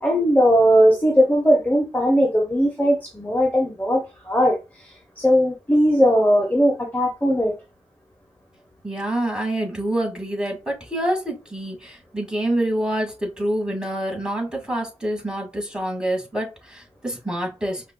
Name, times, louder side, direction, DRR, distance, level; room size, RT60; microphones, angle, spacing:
voice 1, 0.0-4.9 5.2-7.5, equal, 15° left, 1.0 m, -19 dB
voice 2, 8.8-17.8, right 1 dB, 5° right, 2.1 m, -26 dB
5.0 x 2.5 x 2.3 m
cardioid pair, 45°, 12 cm